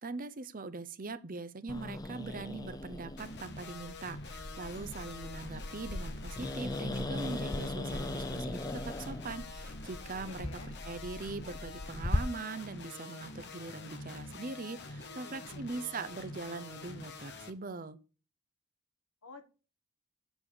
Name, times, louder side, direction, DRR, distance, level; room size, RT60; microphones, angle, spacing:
voice 1, 0.0-8.6 9.0-18.0, right 3 dB, 40° right, 0.7 m, -42 dB
Growling, 1.7-12.2, left 1 dB, 15° left, 0.5 m, -39 dB
sound 1, 3.2-17.5, left 3 dB, 50° left, 1.2 m, -46 dB
voice 2, 10.3-10.8 15.0-15.9 19.2-19.4, left 3 dB, 75° left, 1.4 m, -52 dB
8.2 x 7.2 x 7.0 m
head